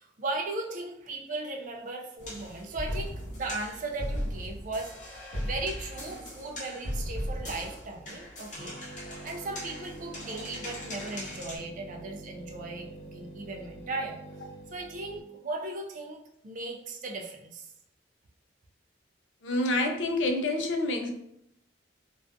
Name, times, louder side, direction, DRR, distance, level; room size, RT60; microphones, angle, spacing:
voice 1, 0.0-4.9 5.4-8.7 9.2-14.2 14.7-17.7, right 2 dB, 45° right, 2 dB, 0.4 m, -37 dB
sound 1, 2.2-11.6, equal, 40° left, 0.7 m, -38 dB
sound 2, 8.5-15.2, right 2 dB, 60° left, 1.0 m, -46 dB
voice 2, 19.4-21.1, left 2 dB, 80° left, 4 dB, 0.4 m, -27 dB
2.4 x 2.2 x 2.5 m, 0.78 s
head